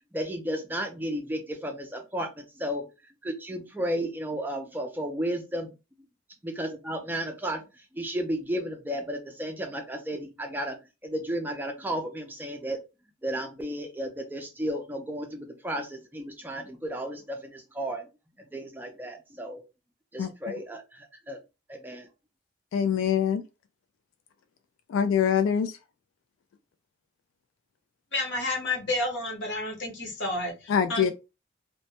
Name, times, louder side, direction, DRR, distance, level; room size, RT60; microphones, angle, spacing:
voice 1, 0.1-2.8 3.2-5.7 6.4-7.6 7.9-12.8 13.2-18.1 18.5-19.6 20.1-21.4 21.7-22.1, equal, 10° right, 0.3 m, -33 dB
voice 2, 22.7-23.4 24.9-25.7 30.7-31.1, left 8 dB, 90° left, 0.3 m, -24 dB
voice 3, 28.1-31.1, left 2 dB, 65° left, 0.9 m, -30 dB
2.1 x 2.1 x 2.8 m
head